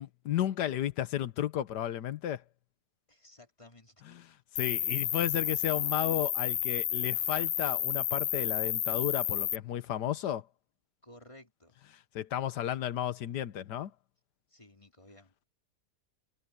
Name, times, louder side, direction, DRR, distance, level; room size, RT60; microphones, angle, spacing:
voice 1, 0.0-2.4 4.6-10.4 12.1-13.9, left 11 dB, 75° left, 1.5 m, -33 dB
voice 2, 3.1-4.1 4.7-4.9 11.0-11.8 14.5-15.5, left 1 dB, 15° left, 3.6 m, -56 dB
Cricket, 4.6-9.6, left 11 dB, 60° left, 1.0 m, -31 dB
omnidirectional pair, 1.8 m